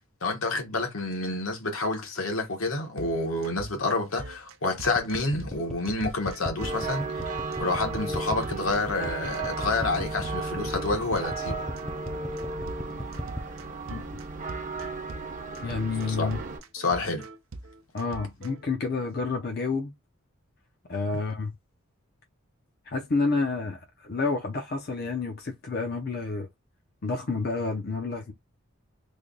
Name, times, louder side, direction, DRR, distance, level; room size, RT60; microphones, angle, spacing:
voice 1, 0.2-7.2 7.6-11.6 16.2-16.3 16.7-17.2, left 2 dB, 80° left, 1.2 m, -28 dB
sound 1, 3.0-18.6, right 3 dB, 75° right, 0.6 m, -44 dB
sound 2, 5.0-13.5, left 1 dB, 5° left, 0.4 m, -36 dB
sound 3, 6.6-16.6, right 3 dB, 40° right, 0.7 m, -34 dB
voice 2, 15.6-16.4 17.9-19.9 20.9-21.5 22.9-26.5 27.0-28.3, left 4 dB, 50° left, 0.6 m, -29 dB
3.3 x 2.2 x 3.8 m
head